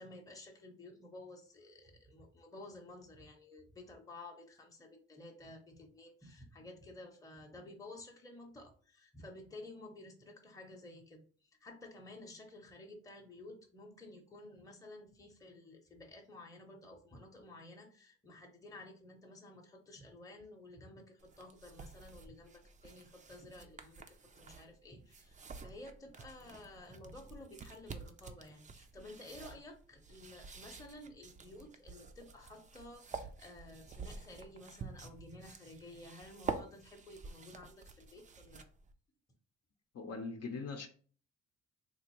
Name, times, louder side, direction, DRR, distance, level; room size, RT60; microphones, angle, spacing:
voice 1, 0.0-38.7, left 2 dB, 10° left, 0.8 m, -53 dB
sound 1, 21.2-38.9, right 5 dB, 25° right, 0.4 m, -49 dB
voice 2, 39.9-40.9, left 4 dB, 55° left, 0.7 m, -41 dB
3.5 x 2.5 x 2.9 m
cardioid pair, 90°, 30 cm